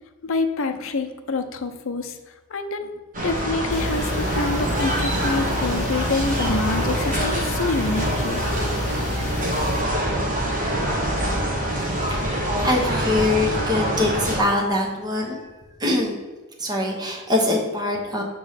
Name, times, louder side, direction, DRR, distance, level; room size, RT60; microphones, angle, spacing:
voice 1, 0.2-2.9 3.2-8.4, left 3 dB, 65° left, 6 dB, 0.6 m, -27 dB
sound 1, 3.1-14.4, right 1 dB, 40° right, 1.2 m, -25 dB
sound 2, 3.7-9.8, left 2 dB, 30° left, 0.8 m, -30 dB
voice 2, 11.7-12.2 12.6-15.5 15.8-16.2 16.6-18.2, left 2 dB, 20° right, 0 dB, 0.8 m, -23 dB
6.8 x 3.1 x 5.7 m, 1.2 s
head